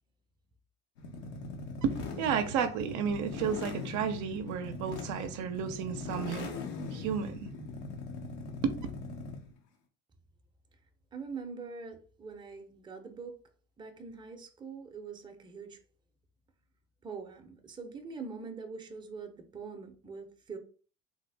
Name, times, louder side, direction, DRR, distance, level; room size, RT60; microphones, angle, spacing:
sound 1, 1.0-9.5, left 3 dB, 85° left, 0.8 m, -41 dB
voice 1, 1.8-6.5 6.9-7.5 8.6-8.8, right 7 dB, 60° right, 0.6 m, -32 dB
voice 2, 11.1-13.4 13.8-15.8 17.0-20.6, right 5 dB, 15° right, 0.6 m, -43 dB
3.4 x 2.1 x 3.3 m
supercardioid pair, 100°, 33 cm